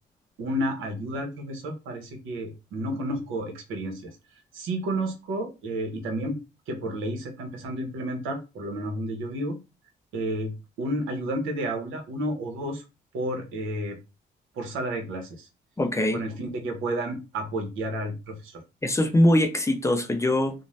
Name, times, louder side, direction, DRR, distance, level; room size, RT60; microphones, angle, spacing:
voice 1, 0.4-4.1 4.5-6.4 6.7-9.6 10.1-12.8 13.1-14.0 14.5-15.5 16.1-18.6, right 1 dB, 90° right, 0.9 m, -31 dB
voice 2, 15.8-16.2 18.8-20.5, left 1 dB, 15° left, 0.5 m, -22 dB
2.6 x 2.1 x 3.1 m
cardioid pair, 90°, 20 cm